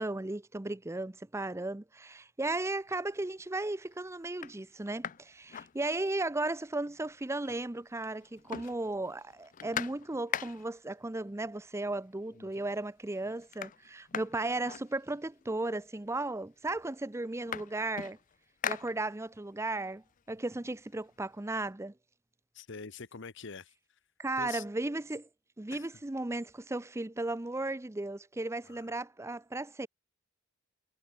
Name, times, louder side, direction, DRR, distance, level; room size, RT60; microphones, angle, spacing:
voice 1, 0.0-18.2 18.7-21.9 24.2-25.3 25.6-29.9, right 2 dB, 15° right, 0.6 m, -35 dB
sound 1, 2.9-3.3 3.9-4.0 4.3-6.4 6.7-6.8 7.0-7.9 8.1-10.9 11.8-11.9 12.3-12.8 13.1-15.5 16.3-16.4 16.7-19.5 19.9-21.6, left 8 dB, 40° left, 0.5 m, -42 dB
voice 2, 22.5-23.7 24.4-24.6 25.7-25.9 28.7-28.8, left 5 dB, 60° left, 1.1 m, -44 dB
head